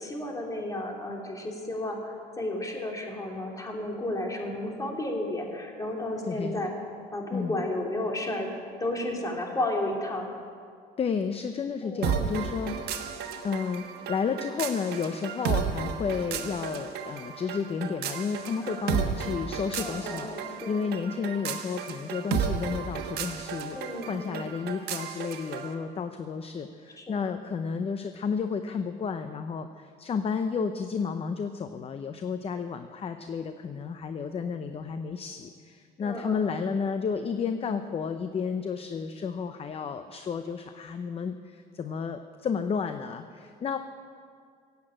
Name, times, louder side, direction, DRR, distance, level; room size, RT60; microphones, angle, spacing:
voice 1, 0.0-6.7 7.1-8.5 8.8-10.3 11.8-12.4 18.6-18.8 19.8-20.8 23.7-24.4 27.0-27.2 36.0-36.6, left 1 dB, 20° left, 0 dB, 3.0 m, -33 dB
voice 2, 6.3-6.6 7.3-7.6 11.0-13.2 13.4-43.8, left 6 dB, 35° left, 8 dB, 0.7 m, -32 dB
sound 1, 12.0-25.7, right 7 dB, 75° right, 1.4 m, -33 dB
16.5 x 8.3 x 8.8 m, 2.2 s
cardioid pair, 110°, 17 cm